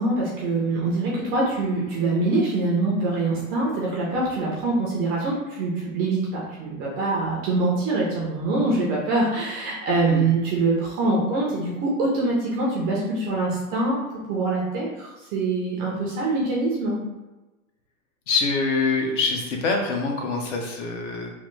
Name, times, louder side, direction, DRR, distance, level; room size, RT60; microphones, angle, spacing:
voice 1, 0.0-14.0 14.3-17.0, right 2 dB, 20° right, -4 dB, 0.4 m, -24 dB
voice 2, 18.3-21.3, left 4 dB, 55° left, 2 dB, 0.8 m, -25 dB
3.2 x 2.0 x 3.0 m, 1.1 s
hypercardioid pair, 130°, 44 cm